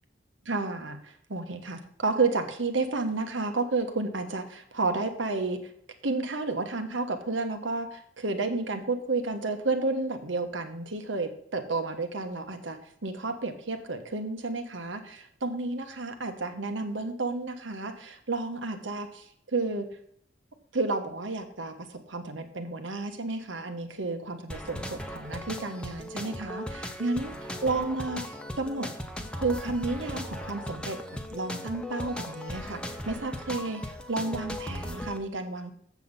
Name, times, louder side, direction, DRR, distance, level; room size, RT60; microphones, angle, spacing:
voice 1, 0.4-5.6 6.0-19.8 20.7-27.3 27.6-28.9 29.4-31.0 31.3-35.7, right 3 dB, 85° right, 7 dB, 1.4 m, -31 dB
sound 1, 24.5-35.2, equal, 5° left, 0.8 m, -38 dB
7.6 x 7.2 x 5.5 m, 0.65 s
head